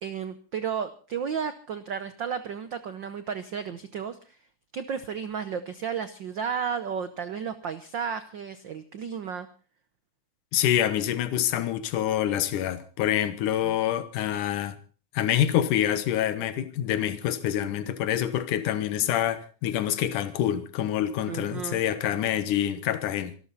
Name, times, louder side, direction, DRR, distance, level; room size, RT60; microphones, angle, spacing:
voice 1, 0.0-4.4 4.7-9.5 13.6-13.8 21.3-21.8, right 7 dB, 85° right, 1.0 m, -33 dB
voice 2, 10.5-14.8 15.1-23.4, left 11 dB, 85° left, 2.7 m, -26 dB
26.0 x 13.0 x 4.1 m
omnidirectional pair, 3.5 m